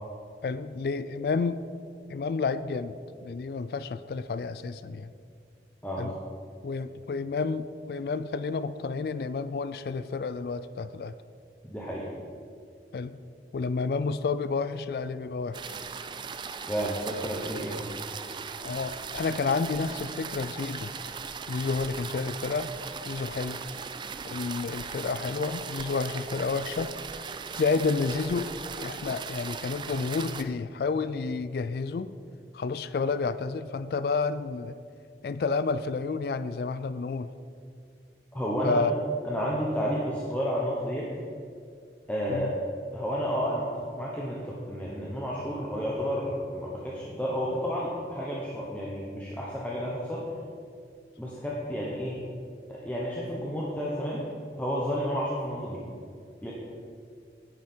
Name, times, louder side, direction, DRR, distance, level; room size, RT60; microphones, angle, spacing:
voice 1, 0.4-1.6 2.1-5.1 6.0-6.1 6.6-11.1 12.9-13.2 13.5-15.7 18.6-20.9 21.5-22.7 23.1-23.6 24.2-26.9 27.6-28.5 28.8-32.1 32.5-34.8 35.2-37.3 38.6-38.9 42.3-42.5, left 4 dB, 60° left, 14 dB, 0.3 m, -30 dB
voice 2, 5.8-6.1 11.6-12.1 16.7-17.8 38.3-38.8 39.2-41.1 42.1-42.5 42.9-50.3 51.2-52.2 52.7-54.2 54.6-55.8 56.4-56.5, equal, 10° left, -5 dB, 1.0 m, -31 dB
sound 1, 15.5-30.4, right 5 dB, 25° right, 0.3 m, -38 dB
9.8 x 9.4 x 4.4 m, 2.4 s
head